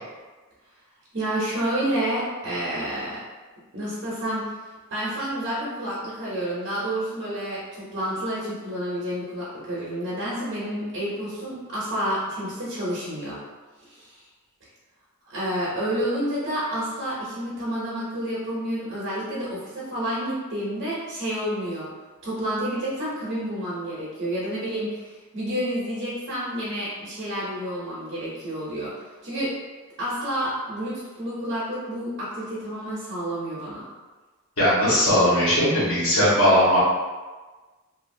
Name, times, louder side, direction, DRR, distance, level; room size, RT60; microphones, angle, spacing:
voice 1, 1.1-3.2 3.7-13.4 13.8-14.2 15.3-21.9 22.2-29.5 30.0-33.9, right 1 dB, 55° right, -8 dB, 0.9 m, -29 dB
voice 2, 34.6-36.8, equal, 85° left, -9 dB, 1.4 m, -19 dB
2.7 x 2.6 x 2.6 m, 1.3 s
head